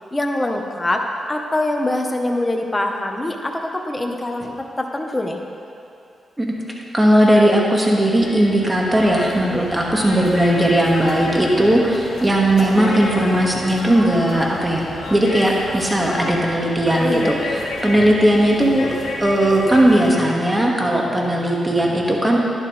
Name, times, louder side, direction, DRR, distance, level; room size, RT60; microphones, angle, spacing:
voice 1, 0.1-5.4 9.5-9.6 17.0-17.3, left 1 dB, 20° left, 3 dB, 1.3 m, -24 dB
voice 2, 6.9-14.8 15.1-18.9 19.2-22.4, right 1 dB, 20° right, -2 dB, 2.1 m, -17 dB
sound 1, 8.1-20.1, left 2 dB, 85° left, 2.4 m, -31 dB
11.5 x 11.0 x 3.5 m, 2.6 s
cardioid pair, 60°, 0 cm